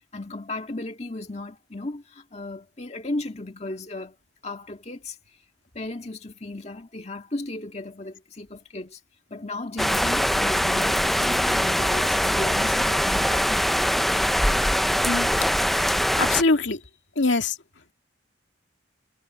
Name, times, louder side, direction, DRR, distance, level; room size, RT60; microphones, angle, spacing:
voice 1, 0.1-4.1 4.4-5.2 5.7-9.0 9.3-13.7, left 2 dB, 35° left, 1.9 m, -35 dB
sound 1, 9.8-16.4, equal, ahead, 0.4 m, -22 dB
voice 2, 15.7-16.8 17.2-17.6, left 3 dB, 80° left, 2.2 m, -24 dB
head